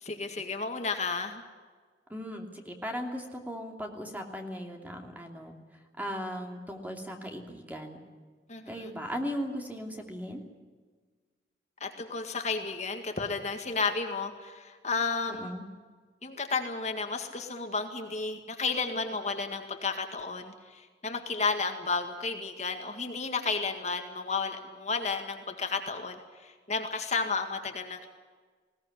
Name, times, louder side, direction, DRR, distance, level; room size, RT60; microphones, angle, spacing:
voice 1, 0.0-1.4 8.5-8.9 11.8-15.5 16.2-28.1, left 4 dB, 40° left, 5 dB, 1.9 m, -32 dB
voice 2, 2.1-5.5 6.0-8.0 8.7-10.4 15.4-15.6, equal, 10° right, 2 dB, 2.8 m, -37 dB
20.5 x 18.0 x 9.8 m, 1.5 s
head